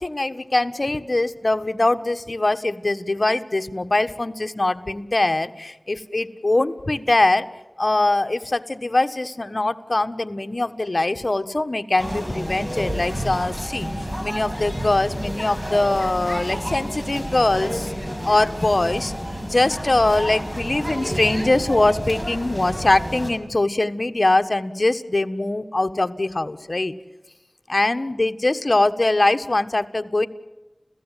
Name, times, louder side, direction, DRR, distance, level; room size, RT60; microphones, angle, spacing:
voice 1, 0.0-7.5 7.8-13.9 14.2-17.9 18.2-19.1 19.4-26.9 27.7-30.3, left 2 dB, 50° left, 8 dB, 1.5 m, -22 dB
sound 1, 12.0-23.3, equal, 15° right, 6.4 m, -30 dB
30.0 x 16.5 x 9.3 m, 1.1 s
wide cardioid pair, 45°, 0 cm